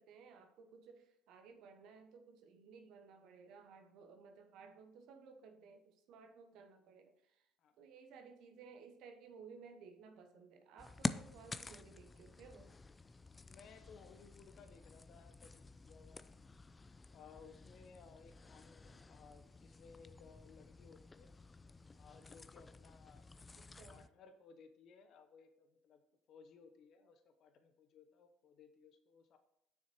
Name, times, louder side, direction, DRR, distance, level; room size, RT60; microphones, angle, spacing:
voice 1, 0.0-7.5 7.8-12.8 23.6-24.1, right 5 dB, 65° right, 6 dB, 1.1 m, -58 dB
sound 1, 10.8-24.1, left 3 dB, 25° left, 0.5 m, -49 dB
voice 2, 13.3-16.3 17.1-21.3 21.9-23.3 23.9-26.0 26.3-29.4, left 5 dB, 55° left, 7 dB, 1.0 m, -61 dB
7.1 x 6.3 x 4.5 m, 0.79 s
hypercardioid pair, 60°, 0 cm